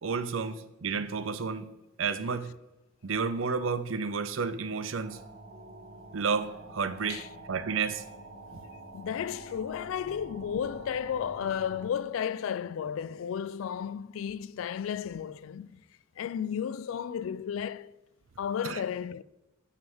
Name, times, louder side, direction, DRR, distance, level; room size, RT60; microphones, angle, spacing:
voice 1, 0.0-1.7 2.0-2.5 3.0-5.2 6.1-8.0 8.5-8.6 18.6-18.8, right 5 dB, 70° right, 0.6 m, -31 dB
sound 1, 5.0-11.9, right 2 dB, 55° right, 1.9 m, -47 dB
voice 2, 8.9-15.8 16.2-17.9 18.4-19.2, left 8 dB, 75° left, 0.3 m, -33 dB
9.4 x 3.5 x 7.0 m
head